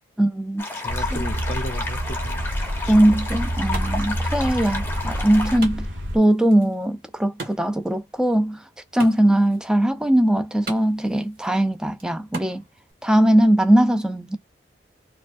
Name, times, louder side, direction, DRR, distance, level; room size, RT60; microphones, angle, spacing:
voice 1, 0.2-0.7 1.1-1.3 2.9-5.9 6.1-8.7 8.9-12.6 13.0-14.4, right 1 dB, 5° right, 0.4 m, -20 dB
sound 1, 0.6-5.6, left 2 dB, 10° left, 0.9 m, -32 dB
voice 2, 0.8-2.9 4.4-4.5, left 2 dB, 40° left, 0.6 m, -35 dB
sound 2, 0.9-6.2, equal, 75° right, 1.1 m, -28 dB
Wood, 2.9-12.9, right 3 dB, 55° right, 1.6 m, -42 dB
4.8 x 2.3 x 2.6 m
head